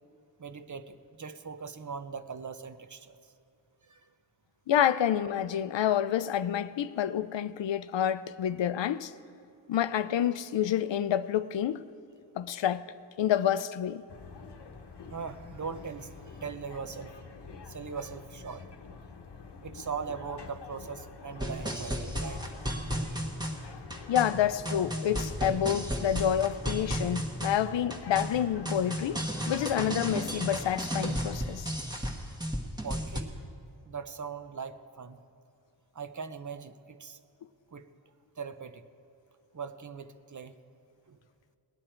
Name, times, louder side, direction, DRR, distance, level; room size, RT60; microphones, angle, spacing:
voice 1, 0.4-3.2 3.8-4.1 15.1-17.3 17.7-18.7 19.6-22.5 32.8-33.3 33.8-35.2 35.9-37.2 37.7-37.9 38.4-38.8 39.5-40.6 41.1-41.2, right 6 dB, 45° right, 0.6 m, -40 dB
voice 2, 4.7-9.1 9.7-11.8 12.4-12.9 13.2-14.0 24.1-29.2 29.5-31.7, left 10 dB, 90° left, 0.5 m, -28 dB
sound 1, 14.1-31.2, left 5 dB, 65° left, 1.0 m, -47 dB
sound 2, 21.4-33.2, equal, 10° right, 1.2 m, -34 dB
19.0 x 10.5 x 4.4 m
wide cardioid pair, 95°, 43 cm